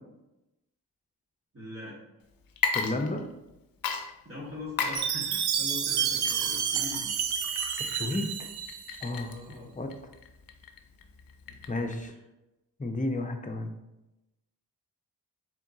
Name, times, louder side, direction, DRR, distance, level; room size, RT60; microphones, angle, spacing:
voice 1, 1.5-2.0 4.2-7.1 9.3-9.8 12.0-12.1, left 3 dB, 35° right, -7 dB, 1.4 m, -41 dB
Water / Liquid, 2.5-3.5 3.8-12.1, left 5 dB, 60° left, 0.6 m, -36 dB
voice 2, 2.7-3.2 7.8-8.5 9.0-9.3 9.7-9.9 11.7-12.1 12.8-13.7, left 2 dB, 20° left, 4 dB, 0.7 m, -32 dB
Chime, 4.9-9.1, right 8 dB, 75° right, 0.5 m, -30 dB
4.4 x 3.8 x 2.7 m, 0.95 s
cardioid pair, 55°, 39 cm